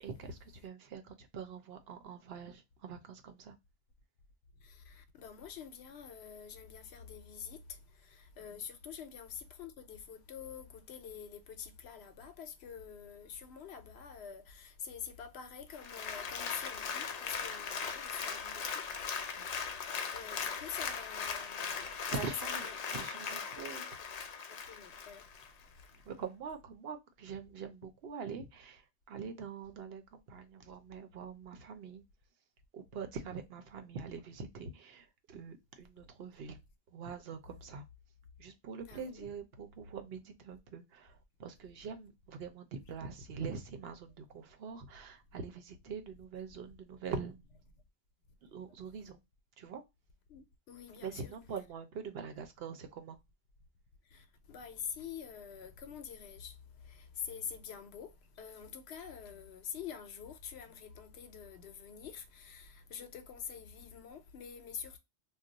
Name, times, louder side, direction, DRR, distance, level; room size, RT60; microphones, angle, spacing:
voice 1, 0.0-3.6 8.4-8.6 19.3-19.5 22.1-23.9 25.9-32.0 32.7-36.6 36.9-37.9 38.4-47.4 48.4-49.2 49.6-49.8 51.0-53.2, right 5 dB, 70° right, 0.8 m, -44 dB
voice 2, 4.6-7.6 8.0-19.6 20.1-21.9 22.2-22.8 23.8-23.9 24.2-24.3 24.7-25.2 38.9-39.3 50.3-51.3 54.1-56.5 56.9-58.1 58.4-65.0, left 7 dB, 75° left, 0.9 m, -46 dB
Applause, 15.7-25.5 25.9-26.0, left 6 dB, 55° left, 0.4 m, -39 dB
2.4 x 2.1 x 3.8 m
omnidirectional pair, 1.1 m